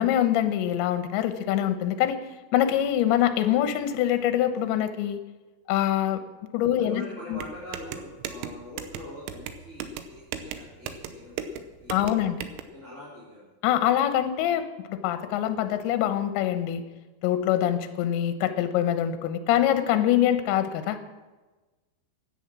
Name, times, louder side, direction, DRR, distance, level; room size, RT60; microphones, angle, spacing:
voice 1, 0.0-2.2 2.5-5.2 5.7-6.2 6.5-7.0 7.3-7.4 11.9-12.4 13.6-16.8 17.2-21.0, left 11 dB, 75° left, 9 dB, 3.1 m, -24 dB
voice 2, 6.9-12.3 12.7-13.4, left 1 dB, 15° right, -8 dB, 3.4 m, -43 dB
sound 1, 7.4-12.6, right 7 dB, 80° right, 3.4 m, -37 dB
16.0 x 10.5 x 6.1 m, 1.2 s
omnidirectional pair, 5.8 m